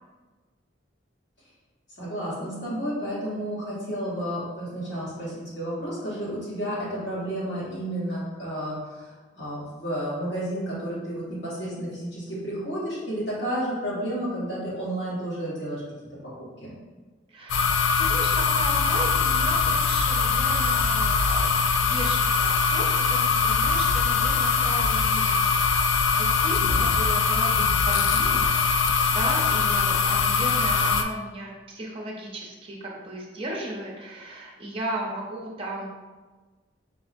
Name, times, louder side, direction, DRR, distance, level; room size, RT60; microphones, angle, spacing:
voice 1, 2.0-15.8 16.6-16.7, right 1 dB, 60° left, -9 dB, 1.1 m, -31 dB
voice 2, 17.3-28.5 29.1-35.9, right 1 dB, 30° right, -2 dB, 0.6 m, -36 dB
sound 1, 17.5-31.0, left 5 dB, 85° left, 0.3 m, -22 dB
5.2 x 2.0 x 2.5 m, 1.3 s
head